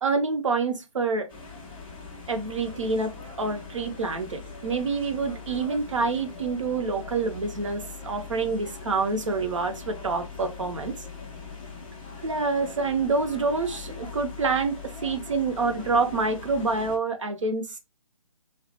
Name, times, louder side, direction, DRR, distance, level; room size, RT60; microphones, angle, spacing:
voice 1, 0.0-1.3 2.3-11.0 12.2-17.8, right 4 dB, 60° right, 0.7 m, -27 dB
sound 1, 1.3-17.0, left 4 dB, 5° left, 0.3 m, -41 dB
2.2 x 2.0 x 2.7 m
figure-of-eight pair, 145°, 18 cm